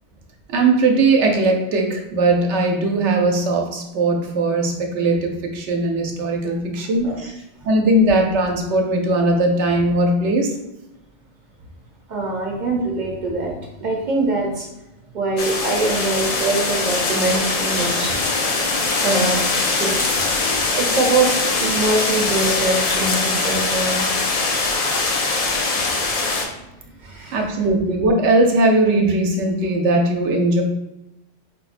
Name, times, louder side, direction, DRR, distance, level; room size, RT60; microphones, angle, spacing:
voice 1, 0.5-7.1 7.6-10.5 25.4-25.6 27.3-30.6, right 2 dB, 85° right, 2 dB, 1.0 m, -19 dB
voice 2, 12.1-13.5 13.8-14.7 15.1-18.1 19.0-19.4 19.8-20.0 20.7-21.3 21.6-24.1 27.0-27.4, right 2 dB, 50° right, -1 dB, 0.7 m, -23 dB
sound 1, 15.4-26.4, left 3 dB, 55° left, 0.4 m, -22 dB
4.9 x 2.1 x 2.4 m, 0.92 s
omnidirectional pair, 1.2 m